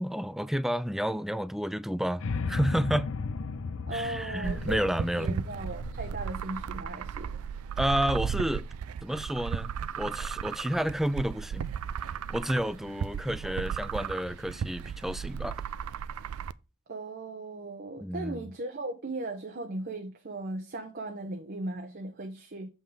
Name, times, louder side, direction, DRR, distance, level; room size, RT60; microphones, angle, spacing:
voice 1, 0.0-3.1 3.9-5.4 7.8-8.7 9.0-11.7 12.1-15.6 18.0-18.5, equal, ahead, 0.3 m, -30 dB
sound 1, 2.2-8.3, left 4 dB, 65° left, 0.5 m, -36 dB
voice 2, 3.9-7.4 16.9-22.7, right 2 dB, 45° right, 0.9 m, -37 dB
sound 2, 4.4-16.5, right 7 dB, 85° right, 0.4 m, -35 dB
7.3 x 5.6 x 3.4 m
head